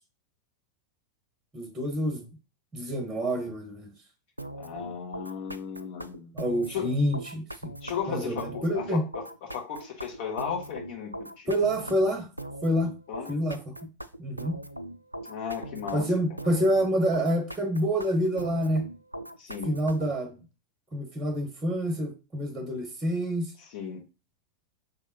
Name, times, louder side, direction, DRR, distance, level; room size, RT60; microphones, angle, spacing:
voice 1, 1.5-2.3 2.7-3.9 6.3-7.7 8.1-9.0 11.5-12.3 12.6-12.9 13.3-13.7 14.2-14.6 15.9-18.9 19.6-20.4 20.9-23.5, equal, 15° right, 0.9 m, -27 dB
sound 1, 4.4-20.2, right 1 dB, 85° right, 0.3 m, -40 dB
voice 2, 4.6-6.3 6.7-6.9 7.8-11.5 13.1-13.4 15.3-16.1 19.4-19.7 23.7-24.0, left 7 dB, 50° left, 1.4 m, -35 dB
5.4 x 3.4 x 2.9 m
figure-of-eight pair, 90°, 0 cm